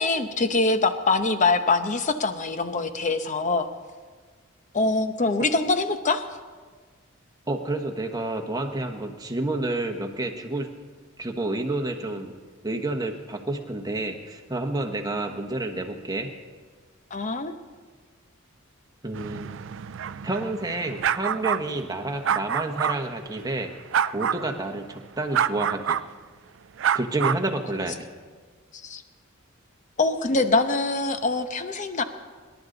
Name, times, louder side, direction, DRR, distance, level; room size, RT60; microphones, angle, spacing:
voice 1, 0.0-3.7 4.7-6.2 17.1-17.5 28.8-29.0 30.0-32.0, left 3 dB, 35° left, 9 dB, 0.8 m, -24 dB
voice 2, 7.5-10.7 11.2-12.3 12.6-16.3 19.0-19.5 20.2-23.7 24.1-26.0 26.9-28.0, right 2 dB, 20° right, 4 dB, 1.2 m, -29 dB
sound 1, 19.1-23.0 23.9-24.5 25.3-26.0 26.8-27.4, right 8 dB, 60° right, 0.4 m, -27 dB
25.5 x 11.5 x 4.0 m, 1.5 s
head